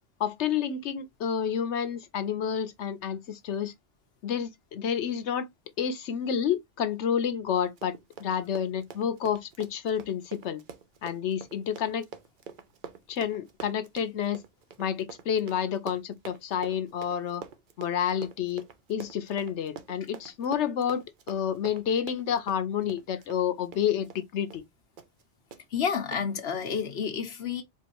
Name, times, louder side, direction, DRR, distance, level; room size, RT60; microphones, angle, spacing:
voice 1, 0.2-3.7 4.2-5.5 5.8-7.9 8.2-10.6 11.0-12.1 13.1-14.4 14.8-17.4 17.8-18.6 18.9-24.6, left 8 dB, 85° left, 1.0 m, -29 dB
Run, 7.6-24.3 24.5-24.7 25.0-25.2 25.5-25.6 26.1-26.2, right 6 dB, 55° right, 0.7 m, -46 dB
voice 2, 25.7-27.6, left 7 dB, 65° left, 1.2 m, -30 dB
4.5 x 2.5 x 2.9 m
omnidirectional pair, 1.1 m